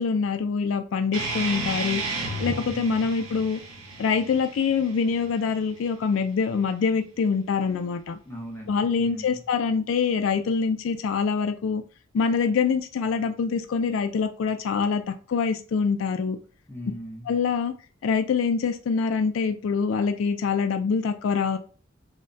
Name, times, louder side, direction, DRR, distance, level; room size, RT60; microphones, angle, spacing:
voice 1, 0.0-2.0 2.4-3.6 4.0-8.2 8.7-11.8 12.1-16.4 17.3-17.7 18.0-21.6, left 5 dB, 80° left, 0.3 m, -25 dB
sound 1, 1.1-6.2, right 2 dB, 85° right, 0.8 m, -33 dB
voice 2, 2.5-3.1 8.2-9.4 16.7-17.3, equal, 10° left, 0.8 m, -38 dB
2.3 x 2.1 x 3.8 m
head